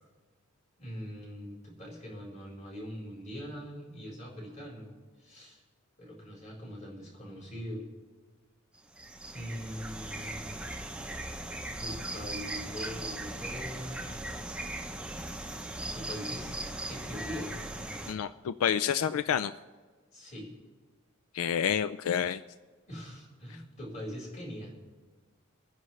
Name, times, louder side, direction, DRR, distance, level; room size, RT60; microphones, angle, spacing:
voice 1, 0.8-4.9 5.2-5.6 6.0-7.8 9.3-10.6 11.8-14.1 15.9-16.6 16.9-17.7 20.1-20.5 22.9-24.7, equal, 35° left, -3 dB, 4.9 m, -42 dB
sound 1, 8.8-18.1, right 1 dB, 5° right, 0.7 m, -39 dB
voice 2, 18.1-19.5 21.3-22.4, left 8 dB, 90° left, 13 dB, 0.4 m, -29 dB
24.0 x 10.0 x 3.2 m, 1.4 s
head